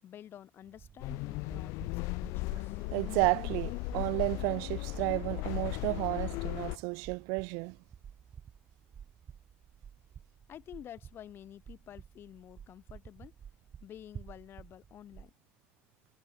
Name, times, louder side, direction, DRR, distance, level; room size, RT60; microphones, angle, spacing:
voice 1, 0.0-2.8 10.5-13.4 13.8-15.3, left 10 dB, 45° left, 3.9 m, -50 dB
sound 1, 0.6-15.3, right 8 dB, 35° right, 3.3 m, -52 dB
sound 2, 1.0-6.8, left 25 dB, 80° left, 0.9 m, -36 dB
voice 2, 2.9-7.8, right 33 dB, 85° right, 0.7 m, -32 dB
cardioid pair, 120°, 5 cm